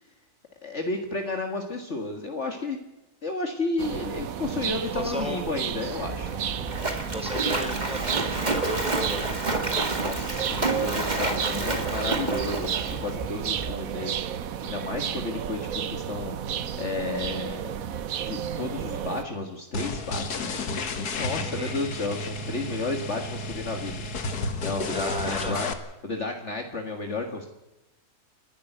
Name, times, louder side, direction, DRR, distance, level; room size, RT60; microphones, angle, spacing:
voice 1, 0.6-2.8 3.2-6.3 10.0-14.2 14.6-16.4 16.7-17.7 18.2-20.5 21.2-24.0 24.6-25.7 26.0-27.5, left 3 dB, 50° left, 4 dB, 2.1 m, -32 dB
sound 1, 3.8-19.2, right 8 dB, 65° right, 1.3 m, -32 dB
voice 2, 4.9-5.4 6.6-6.7 7.1-9.4 20.3-20.6 21.4-21.7 24.9-25.6, equal, 5° right, 2 dB, 4.9 m, -34 dB
Splash splatter, 5.8-13.7, right 2 dB, 30° right, 2.3 m, -30 dB
sound 2, 19.7-25.7, left 3 dB, 80° left, 2.1 m, -32 dB
29.5 x 12.0 x 7.9 m, 0.94 s
omnidirectional pair, 1.6 m